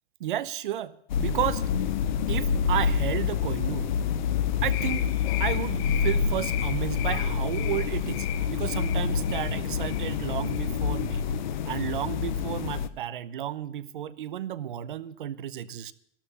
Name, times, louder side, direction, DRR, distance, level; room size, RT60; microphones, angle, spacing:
voice 1, 0.2-0.9 1.2-1.6 2.3-4.0 4.6-5.1 5.4-11.2 11.6-15.9, right 11 dB, 45° right, 17 dB, 0.8 m, -32 dB
sound 1, 1.1-12.9, left 7 dB, 40° left, 0.8 m, -27 dB
sound 2, 4.7-10.2 10.4-10.7 11.0-11.2, left 12 dB, 25° left, 1.2 m, -38 dB
13.0 x 12.0 x 6.7 m, 0.69 s
hypercardioid pair, 170°, 35 cm